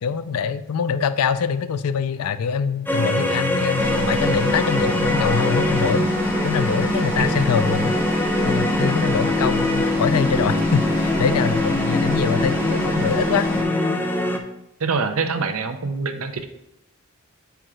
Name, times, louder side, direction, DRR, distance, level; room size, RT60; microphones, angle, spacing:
voice 1, 0.0-6.1 6.4-8.0 8.5-13.5, left 6 dB, 85° left, 13 dB, 0.4 m, -24 dB
sound 1, 2.9-14.4, left 1 dB, 10° left, 0.5 m, -23 dB
sound 2, 3.8-13.6, equal, 10° right, 0.9 m, -27 dB
voice 2, 14.8-16.5, right 4 dB, 70° right, 7 dB, 0.7 m, -25 dB
7.9 x 4.6 x 3.7 m, 0.86 s
head